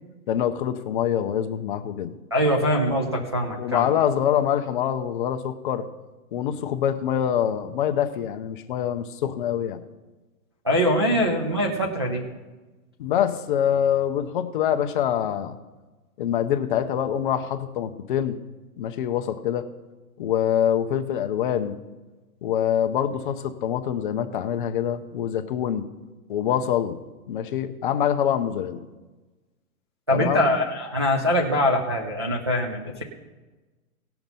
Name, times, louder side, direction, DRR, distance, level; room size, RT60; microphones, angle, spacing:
voice 1, 0.3-2.1 3.6-5.8 6.3-9.8 11.1-11.2 13.0-15.6 16.2-18.4 18.8-19.6 20.2-21.8 22.4-25.8 26.3-27.0 27.3-28.8 30.1-30.4, left 9 dB, 35° left, 8 dB, 0.6 m, -25 dB
voice 2, 2.3-3.9 10.6-12.2 30.1-33.0, equal, 20° right, -3 dB, 0.3 m, -23 dB
17.5 x 5.9 x 5.4 m, 1.2 s
hypercardioid pair, 150°, 45 cm